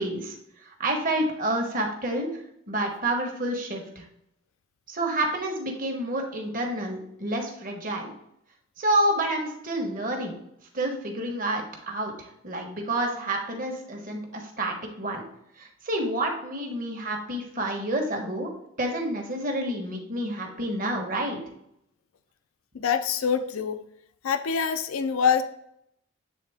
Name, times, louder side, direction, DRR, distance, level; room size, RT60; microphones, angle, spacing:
voice 1, 0.0-2.3 2.7-4.0 4.9-8.1 8.8-10.3 10.7-15.3 15.6-21.4, right 1 dB, 40° right, 2 dB, 1.2 m, -29 dB
voice 2, 22.7-23.8 24.2-25.4, left 6 dB, 80° left, 10 dB, 0.5 m, -25 dB
8.4 x 3.6 x 3.5 m, 0.74 s
head